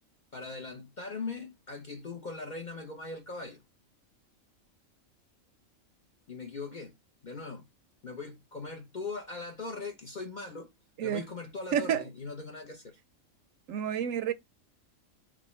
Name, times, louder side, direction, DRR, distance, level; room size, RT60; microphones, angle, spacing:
voice 1, 0.3-3.6 6.3-6.9 7.2-7.7 8.0-10.7 11.0-13.0, left 3 dB, 50° left, 0.6 m, -40 dB
voice 2, 11.7-12.0 13.7-14.3, right 9 dB, 75° right, 1.0 m, -29 dB
6.0 x 2.2 x 3.0 m
omnidirectional pair, 1.4 m